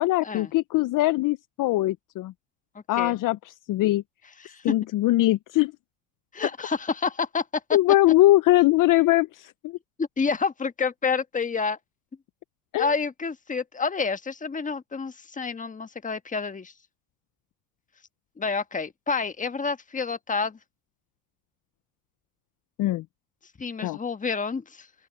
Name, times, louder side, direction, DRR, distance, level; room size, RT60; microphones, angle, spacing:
voice 1, 0.0-2.3 2.9-4.0 4.6-5.7 7.7-9.8 12.7-12.9 22.8-23.0 23.8-24.0, left 16 dB, 45° left, 0.7 m, -21 dB
voice 2, 6.3-7.6 10.0-11.8 12.8-16.7 18.4-20.6 23.6-24.9, left 5 dB, 20° left, 1.4 m, -29 dB
open air
supercardioid pair, 95°, 43 cm